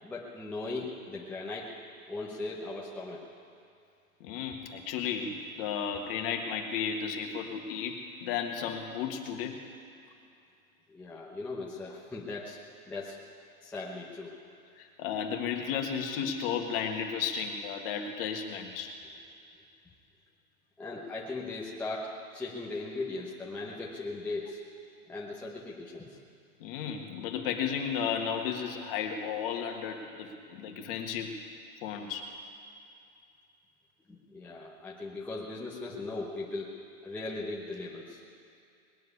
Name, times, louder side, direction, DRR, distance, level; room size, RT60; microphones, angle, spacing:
voice 1, 0.0-1.7 2.1-3.2 10.9-12.6 12.8-13.2 13.6-14.3 20.8-22.1 22.3-24.6 25.1-26.2 34.1-36.7 37.0-38.2, left 3 dB, 5° left, -5 dB, 0.8 m, -38 dB
voice 2, 4.2-9.6 14.8-19.0 26.6-31.4 31.8-32.2, left 7 dB, 40° left, 4 dB, 1.6 m, -34 dB
20.0 x 7.5 x 9.7 m, 2.5 s
supercardioid pair, 160°, 44 cm